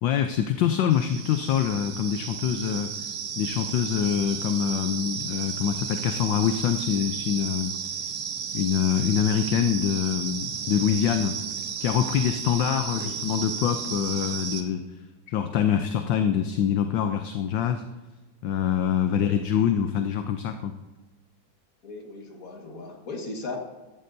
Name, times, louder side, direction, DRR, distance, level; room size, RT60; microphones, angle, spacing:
voice 1, 0.0-3.1 3.4-7.8 8.5-11.4 11.8-14.8 15.3-17.8 18.4-20.8, left 9 dB, 70° left, 7 dB, 1.3 m, -25 dB
sound 1, 0.9-14.6, right 7 dB, 65° right, 1.6 m, -33 dB
voice 2, 21.8-23.6, left 2 dB, 45° left, 2 dB, 2.0 m, -37 dB
14.0 x 12.5 x 2.7 m, 1.2 s
omnidirectional pair, 2.2 m